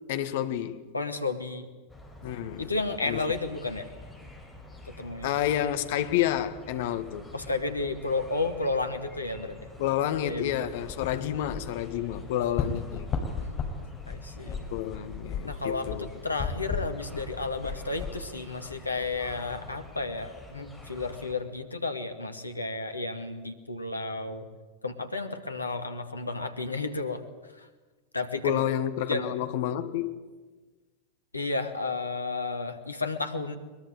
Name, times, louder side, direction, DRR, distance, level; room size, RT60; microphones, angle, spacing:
voice 1, 0.1-0.8 2.2-2.7 3.0-3.2 5.2-7.3 9.8-13.1 14.7-16.1 28.4-30.2, left 11 dB, 55° left, 1.6 m, -29 dB
voice 2, 0.9-1.7 2.6-3.9 4.8-5.3 7.3-9.6 10.2-10.7 13.4-14.7 15.4-24.5 24.8-27.2 27.6-27.7 28.1-28.6 29.1-29.5 31.3-33.6, left 3 dB, 80° left, 2.1 m, -32 dB
sound 1, 1.9-21.3, left 1 dB, ahead, 4.9 m, -47 dB
sound 2, 10.7-19.2, left 5 dB, 30° left, 4.5 m, -36 dB
22.5 x 21.5 x 9.0 m
figure-of-eight pair, 90°, 0 cm